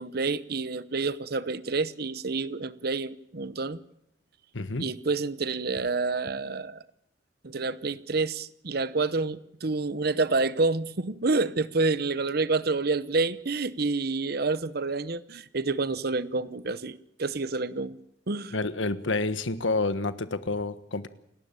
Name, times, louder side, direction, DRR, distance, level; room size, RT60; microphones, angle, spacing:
voice 1, 0.0-3.8 4.8-6.8 7.4-18.0 18.3-18.5, right 3 dB, 55° right, 0.9 m, -28 dB
voice 2, 4.5-4.9 18.5-21.1, left 3 dB, 90° left, 1.4 m, -29 dB
28.0 x 12.5 x 9.0 m
head